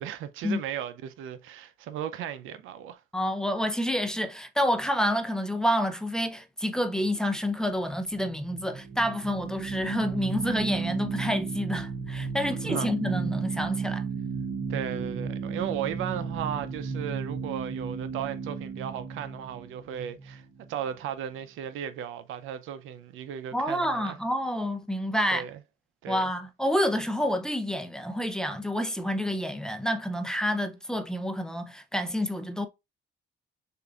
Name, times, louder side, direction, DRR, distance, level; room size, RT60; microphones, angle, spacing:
voice 1, 0.0-3.0 12.6-12.9 14.7-24.2 25.3-25.6 26.0-26.3, right 9 dB, 85° right, 0.6 m, -36 dB
voice 2, 3.1-14.0 23.5-25.4 26.1-32.7, equal, 5° left, 0.6 m, -28 dB
sound 1, 7.8-20.9, right 5 dB, 45° right, 0.9 m, -34 dB
6.5 x 2.6 x 2.4 m
cardioid pair, 90°, 20 cm